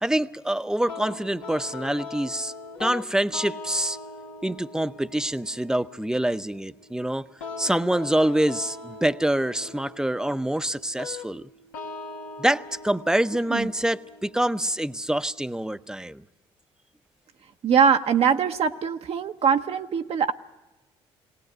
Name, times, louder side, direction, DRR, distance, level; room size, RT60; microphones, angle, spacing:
voice 1, 0.0-2.5 2.8-4.0 4.4-7.3 7.6-11.5 12.4-16.2, right 1 dB, 5° right, 13 dB, 0.7 m, -26 dB
sound 1, 0.9-15.8, left 3 dB, 85° left, 1.4 m, -41 dB
voice 2, 17.6-20.3, right 7 dB, 55° right, 6 dB, 0.8 m, -22 dB
21.0 x 18.0 x 7.9 m, 1.0 s
hypercardioid pair, 55°, 12 cm